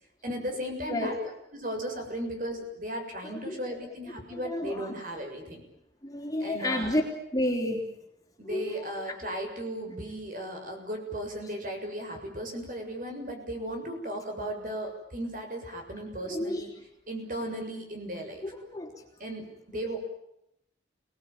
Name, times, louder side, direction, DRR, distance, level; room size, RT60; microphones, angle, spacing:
voice 1, 0.2-1.2 1.5-5.6 6.4-6.9 8.4-16.7 17.1-18.5 19.2-20.0, equal, 45° right, 3 dB, 7.1 m, -36 dB
voice 2, 3.2-3.6 4.3-5.0 6.0-7.0 7.3-7.8 8.5-9.4 16.2-16.7 18.4-18.9 19.8-19.9, left 1 dB, 20° left, 1 dB, 3.9 m, -31 dB
30.0 x 20.5 x 9.2 m, 0.80 s
head